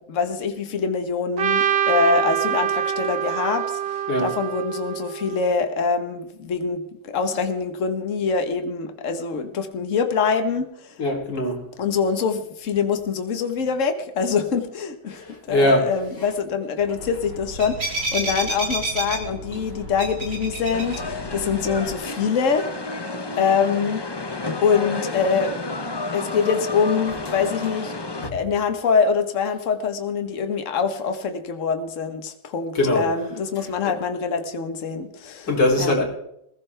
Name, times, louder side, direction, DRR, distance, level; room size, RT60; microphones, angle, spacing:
voice 1, 0.1-11.0 11.8-22.7 23.4-24.0 24.6-25.6 26.1-27.9 28.3-35.5 35.8-35.9, left 5 dB, 50° left, 7 dB, 1.6 m, -24 dB
Trumpet, 1.4-5.5, right 10 dB, 45° right, 0.8 m, -25 dB
voice 2, 11.0-11.6 15.1-15.9 19.5-19.6 28.2-28.4 32.8-33.0 35.5-36.0, left 1 dB, 85° left, -1 dB, 4.1 m, -21 dB
sound 1, 17.0-21.9, right 2 dB, 80° right, 5.2 m, -30 dB
sound 2, 20.7-28.3, left 3 dB, 25° left, 0.5 m, -31 dB
20.5 x 15.5 x 3.4 m, 0.75 s
omnidirectional pair, 1.8 m